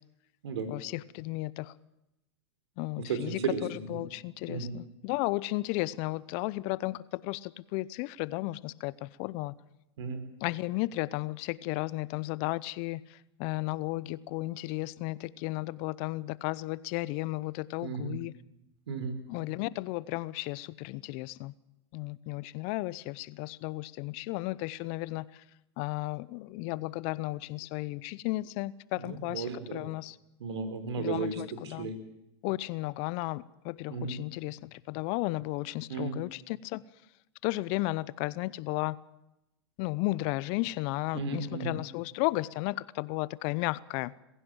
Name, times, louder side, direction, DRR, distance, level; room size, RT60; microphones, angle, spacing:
voice 1, 0.7-1.7 2.8-3.4 3.7-9.5 10.4-18.3 19.3-21.5 21.9-25.4 25.8-30.2 31.0-31.9 32.4-36.8 37.4-39.0 39.8-44.1, left 20 dB, 45° left, 0.8 m, -34 dB
voice 2, 3.1-4.0 4.5-4.8 10.0-10.3 17.8-18.2 18.9-19.2 29.0-29.8 30.4-32.0 33.9-34.2 35.9-36.2 41.1-41.7, right 5 dB, 75° right, 4.3 m, -34 dB
22.0 x 15.5 x 9.1 m
hypercardioid pair, 115°, 14 cm